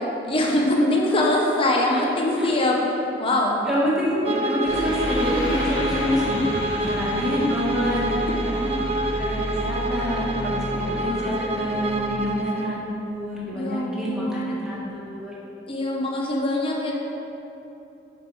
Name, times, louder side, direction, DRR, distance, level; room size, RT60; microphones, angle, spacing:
voice 1, 0.3-2.8 3.2-3.6 8.3-8.4 10.7-10.8 13.5-14.6 15.7-16.9, left 1 dB, 30° left, -1 dB, 0.7 m, -23 dB
voice 2, 3.7-8.7 9.2-15.3, equal, 5° right, -8 dB, 1.4 m, -27 dB
Bowed string instrument, 4.2-12.8, right 1 dB, 35° right, 0.4 m, -28 dB
sound 1, 4.6-12.0, equal, 90° left, 1.4 m, -31 dB
5.7 x 4.9 x 4.8 m, 3.0 s
head